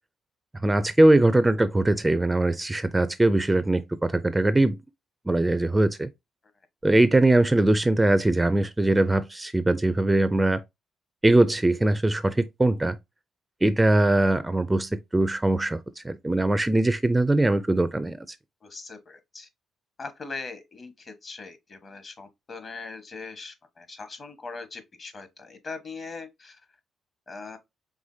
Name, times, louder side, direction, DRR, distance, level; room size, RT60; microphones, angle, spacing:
voice 1, 0.6-4.8 5.3-6.1 6.8-10.6 11.2-13.0 13.6-18.4, right 1 dB, 15° right, 0.4 m, -21 dB
voice 2, 18.6-19.5 20.0-26.6 27.3-27.6, left 4 dB, 40° left, 1.3 m, -40 dB
4.8 x 3.5 x 2.7 m
cardioid pair, 90°, 0 cm